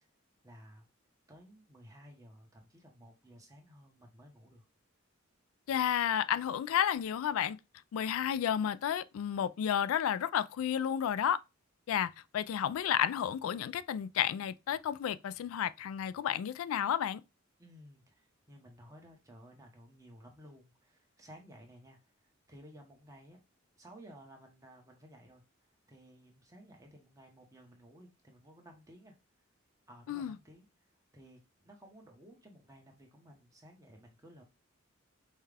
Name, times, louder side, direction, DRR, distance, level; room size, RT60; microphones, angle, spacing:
voice 1, 0.4-0.9 1.3-4.6 17.6-22.0 22.5-23.4 23.8-25.4 25.9-29.1 29.9-30.6 31.1-34.4, equal, 15° right, 1.0 m, -56 dB
voice 2, 5.7-7.6 7.9-11.4 11.9-17.2 30.1-30.4, left 9 dB, 90° left, 0.3 m, -31 dB
5.5 x 2.3 x 3.3 m
head